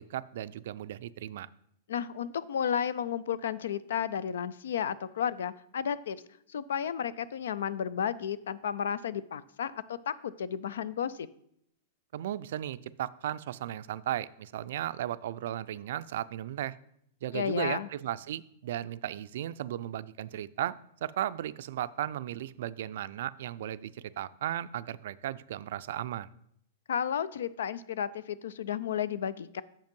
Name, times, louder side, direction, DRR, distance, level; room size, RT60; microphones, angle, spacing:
voice 1, 0.0-1.5 12.1-16.8 17.2-26.3, right 12 dB, 65° right, 16 dB, 0.3 m, -35 dB
voice 2, 1.9-6.2 6.5-11.3 17.3-17.9 26.9-29.6, left 8 dB, 90° left, 17 dB, 0.4 m, -33 dB
7.2 x 5.3 x 5.2 m, 0.73 s
supercardioid pair, 160°, 0 cm